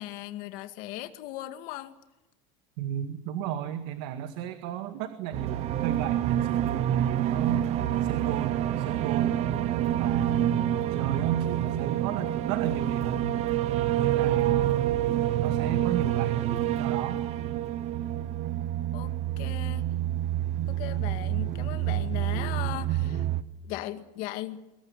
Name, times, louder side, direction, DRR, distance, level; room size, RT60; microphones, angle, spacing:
voice 1, 0.0-2.0 18.9-19.9 20.7-23.2 23.6-24.7, left 15 dB, 60° left, 2.2 m, -38 dB
voice 2, 2.8-7.7 8.0-9.4 10.0-13.4 14.0-14.9 15.4-17.2, right 9 dB, 70° right, 2.0 m, -34 dB
sound 1, 5.3-23.4, right 12 dB, 45° right, 1.1 m, -27 dB
25.0 x 21.0 x 9.1 m
cardioid pair, 165°, 16 cm